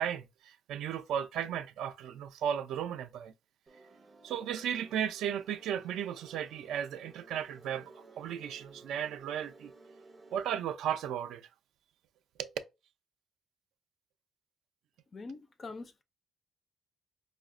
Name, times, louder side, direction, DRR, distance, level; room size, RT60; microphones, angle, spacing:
voice 1, 0.0-3.3 4.2-9.7 10.3-11.5 12.4-12.5, right 9 dB, 80° right, 0.3 m, -35 dB
sound 1, 3.7-10.5, right 3 dB, 20° right, 0.6 m, -56 dB
voice 2, 15.1-16.0, left 3 dB, 30° left, 0.3 m, -44 dB
4.7 x 2.0 x 2.4 m
cardioid pair, 160°, 0 cm